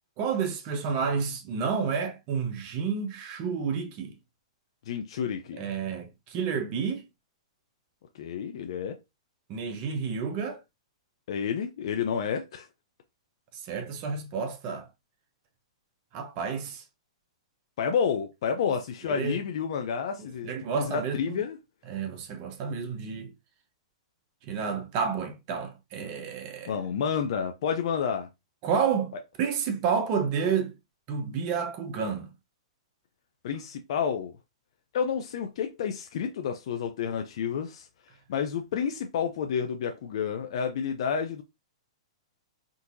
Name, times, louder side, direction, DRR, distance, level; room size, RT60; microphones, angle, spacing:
voice 1, 0.2-4.1 5.5-7.0 9.5-10.6 13.5-14.9 16.1-16.8 19.1-19.4 20.2-21.4 21.9-23.3 24.4-26.8 28.6-30.8 31.1-32.3, right 6 dB, 40° right, 0.9 m, -30 dB
voice 2, 4.9-5.6 8.2-9.0 11.3-12.7 17.8-20.5 20.7-21.6 26.7-28.3 33.4-34.3 34.9-37.9 38.3-41.4, left 7 dB, 60° left, 0.5 m, -30 dB
3.8 x 2.7 x 2.5 m
hypercardioid pair, 140°, 3 cm